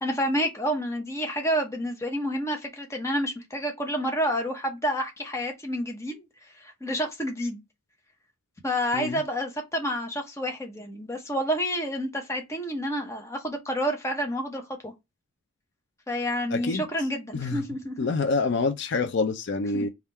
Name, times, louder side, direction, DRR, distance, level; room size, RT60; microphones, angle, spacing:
voice 1, 0.0-6.2 6.6-7.6 8.6-14.9 16.1-18.1 19.7-19.9, equal, 15° left, 0.7 m, -29 dB
voice 2, 16.5-16.8 17.3-17.6 18.0-19.9, left 4 dB, 55° left, 0.4 m, -26 dB
3.5 x 2.4 x 4.2 m
head